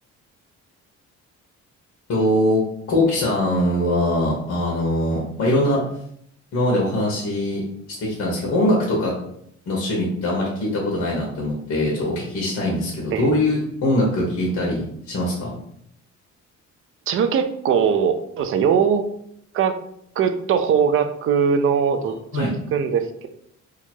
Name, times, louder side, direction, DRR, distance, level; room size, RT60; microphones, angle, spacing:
voice 1, 2.1-2.6 2.9-5.8 6.5-7.6 8.0-9.1 9.7-15.5 22.3-22.5, left 1 dB, 55° left, -3 dB, 1.0 m, -22 dB
voice 2, 17.1-19.0 19.5-19.8 20.2-23.3, right 7 dB, 45° right, 8 dB, 0.4 m, -21 dB
2.9 x 2.4 x 4.3 m, 0.70 s
cardioid pair, 150°, 29 cm